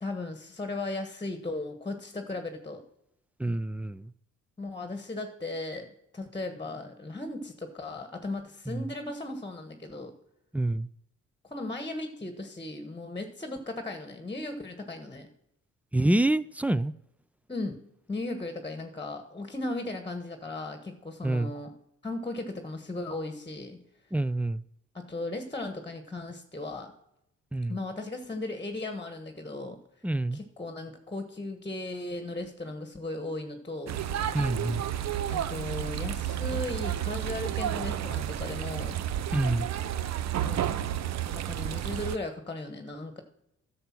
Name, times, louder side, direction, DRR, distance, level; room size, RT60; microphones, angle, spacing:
voice 1, 0.0-2.8 4.6-5.9 6.1-10.1 11.4-15.3 17.5-17.8 18.1-21.7 22.0-23.8 24.9-26.9 27.7-29.8 30.3-34.0 35.3-39.0 40.4-40.6 41.3-43.2, left 2 dB, 15° left, 1.4 m, -36 dB
voice 2, 3.4-4.1 8.7-8.8 10.5-10.9 15.9-16.9 21.2-21.5 24.1-24.6 27.5-27.8 30.0-30.4 34.3-34.8 39.3-39.7, right 1 dB, 5° right, 0.3 m, -27 dB
sound 1, 33.9-42.2, right 11 dB, 60° right, 0.7 m, -31 dB
11.5 x 6.9 x 5.9 m
cardioid pair, 90°, 30 cm